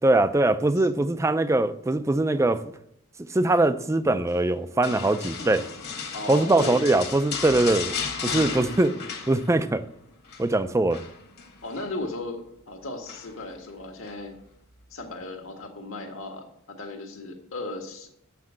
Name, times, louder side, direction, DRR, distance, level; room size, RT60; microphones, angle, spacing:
voice 1, 0.0-2.7 3.3-5.7 6.3-9.0 9.3-9.8 10.4-11.0, right 2 dB, 15° right, 0.4 m, -22 dB
sound 1, 4.8-9.8 10.1-10.5 10.9-11.9 13.1-13.5 14.0-14.2, left 5 dB, 50° left, 1.4 m, -34 dB
voice 2, 6.1-6.9 11.6-14.3 14.9-18.1, left 2 dB, 70° left, 1.7 m, -36 dB
7.2 x 5.9 x 7.6 m
head